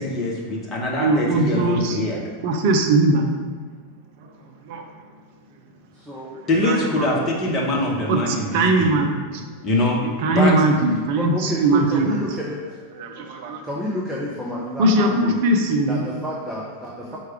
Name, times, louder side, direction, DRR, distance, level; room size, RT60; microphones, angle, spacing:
voice 1, 0.0-2.2 6.5-9.0 9.6-10.0 10.3-10.5, left 1 dB, 25° left, -2 dB, 1.0 m, -23 dB
voice 2, 1.0-2.0 2.4-3.2 4.2-4.3 4.7-4.9 6.6-7.1 8.1-9.5 10.0-12.2 13.0-13.7 14.8-16.0 17.1-17.2, right 2 dB, 50° right, 4 dB, 0.5 m, -20 dB
voice 3, 5.9-6.4 6.8-6.9 11.1-12.6 13.6-15.4 15.9-17.2, left 1 dB, 5° right, -4 dB, 0.6 m, -30 dB
4.6 x 2.3 x 4.6 m, 1.5 s
figure-of-eight pair, 90°, 0 cm